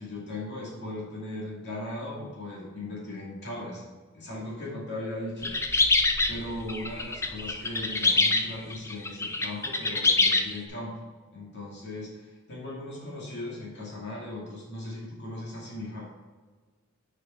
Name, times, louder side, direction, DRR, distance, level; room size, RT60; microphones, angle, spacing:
voice 1, 0.0-3.8 4.1-5.5 6.3-10.9 11.3-16.1, left 1 dB, 55° left, -5 dB, 2.4 m, -38 dB
sound 1, 5.4-10.6, left 3 dB, 15° left, 0.6 m, -25 dB
8.8 x 5.1 x 4.6 m, 1.4 s
head